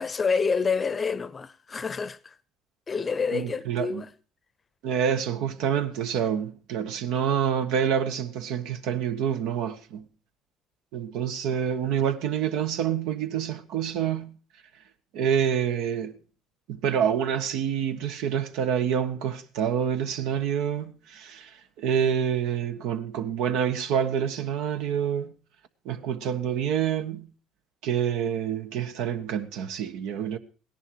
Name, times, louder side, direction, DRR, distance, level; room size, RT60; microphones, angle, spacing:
voice 1, 0.0-2.3 2.9-4.1, left 5 dB, 30° left, 0.7 m, -28 dB
voice 2, 3.3-4.1 4.8-10.1 10.9-14.3 15.1-16.2 16.7-25.3 25.8-27.3 27.8-30.4, right 8 dB, 75° right, 1.3 m, -27 dB
17.0 x 11.0 x 4.7 m
supercardioid pair, 95°, 0 cm